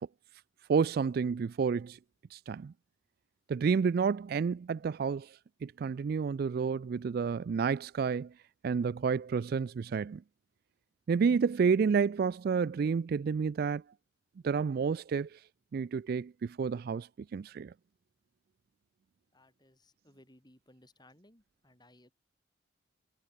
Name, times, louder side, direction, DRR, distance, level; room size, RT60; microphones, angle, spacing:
voice 1, 0.7-2.0 2.3-2.7 3.5-8.3 8.6-10.2 11.1-13.8 14.4-15.4 15.7-17.7, right 5 dB, 50° right, 0.3 m, -30 dB
voice 2, 19.3-22.1, left 1 dB, 20° left, 7.1 m, -62 dB
head